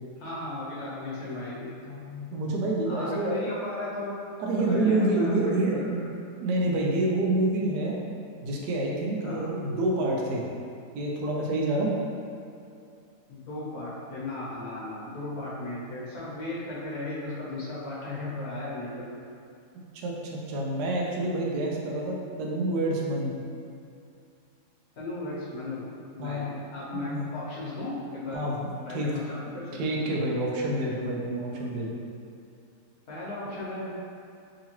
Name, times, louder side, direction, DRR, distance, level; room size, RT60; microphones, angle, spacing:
voice 1, 0.2-1.7 2.9-4.2 4.7-5.8 9.2-9.5 13.3-19.2 24.9-28.4 28.8-29.8 31.5-31.7 33.1-34.1, left 2 dB, 65° left, -8 dB, 1.4 m, -36 dB
voice 2, 1.9-3.4 4.4-6.0 6.4-8.0 8.4-10.4 10.9-11.9 19.9-23.4 26.2-26.7 26.9-27.3 28.3-28.7 28.9-29.1 29.7-32.0, right 2 dB, 80° right, -2 dB, 1.2 m, -28 dB
3.7 x 2.9 x 2.9 m, 2.5 s
omnidirectional pair, 1.8 m